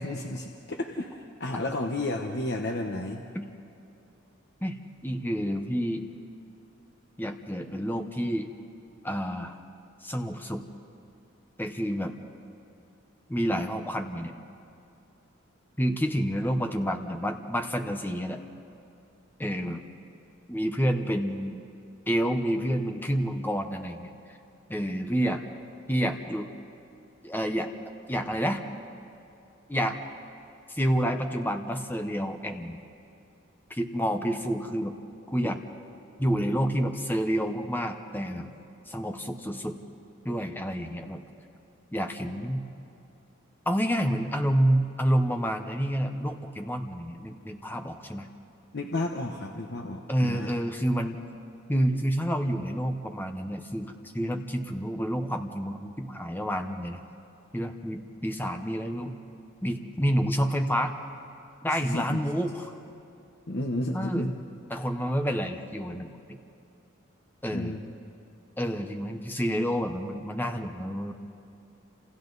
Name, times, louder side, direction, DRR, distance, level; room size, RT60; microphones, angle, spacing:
voice 1, 0.0-3.2 48.7-50.6 61.7-62.2 63.5-64.3 67.5-67.8, left 1 dB, 55° left, 2 dB, 1.1 m, -32 dB
voice 2, 5.0-6.1 7.2-8.5 9.0-9.6 10.0-10.6 11.6-12.1 13.3-14.3 15.8-18.4 19.4-19.8 20.5-21.6 22.1-24.1 24.7-25.4 25.9-26.5 27.2-27.7 28.1-28.6 29.7-30.0 30.7-32.8 33.7-35.0 35.3-35.6 36.2-38.5 38.9-39.8 40.2-41.2 41.9-42.7 43.7-48.3 50.1-51.2 51.7-57.0 57.5-59.2 59.6-60.9 61.6-62.6 63.9-64.3 64.7-66.4 67.4-67.8 68.6-71.1, equal, 10° left, 5 dB, 1.0 m, -29 dB
29.5 x 27.5 x 4.1 m, 2.7 s
head